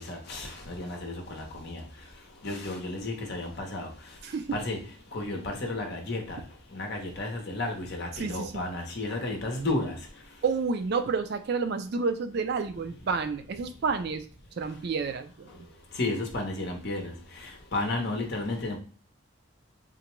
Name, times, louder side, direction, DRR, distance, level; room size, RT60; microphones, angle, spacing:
voice 1, 0.0-1.8 2.4-3.9 4.5-4.8 5.1-6.4 6.7-10.0 16.0-17.1 17.4-18.8, left 2 dB, 50° left, 0.8 m, -32 dB
voice 2, 8.2-8.6 10.4-14.3 14.6-15.6, right 5 dB, 50° right, 0.4 m, -30 dB
3.8 x 2.1 x 3.0 m
head